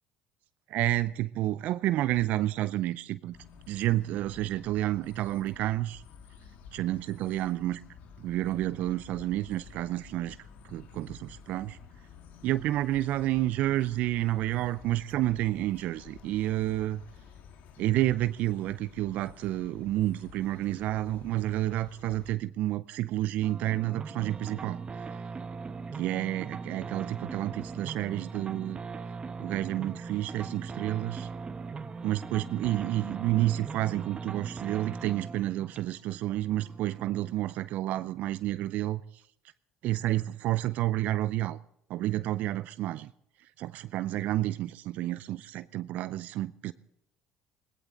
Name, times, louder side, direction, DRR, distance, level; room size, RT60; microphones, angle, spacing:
voice 1, 0.7-3.4 3.7-6.0 6.7-7.8 8.2-10.4 10.6-11.8 12.4-17.0 17.8-25.1 25.9-28.8 29.4-31.3 32.0-39.2 39.8-41.6 41.9-43.1 43.4-46.7, right 15 dB, 65° right, 0.5 m, -30 dB
sound 1, 3.3-22.3, left 6 dB, 70° left, 1.8 m, -51 dB
sound 2, 23.4-37.5, right 4 dB, 35° right, 1.3 m, -40 dB
21.0 x 18.0 x 3.9 m
hypercardioid pair, 70°, 3 cm